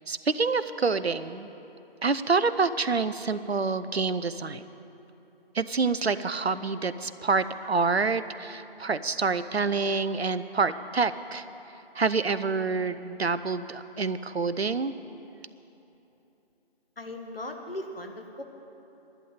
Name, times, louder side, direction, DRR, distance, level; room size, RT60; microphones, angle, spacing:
voice 1, 0.1-1.5 2.0-4.6 5.5-11.4 12.0-14.9, right 4 dB, 80° right, 13 dB, 0.7 m, -27 dB
voice 2, 17.0-18.4, left 1 dB, 65° left, 4 dB, 1.7 m, -38 dB
12.0 x 8.2 x 9.1 m, 3.0 s
figure-of-eight pair, 160°, 31 cm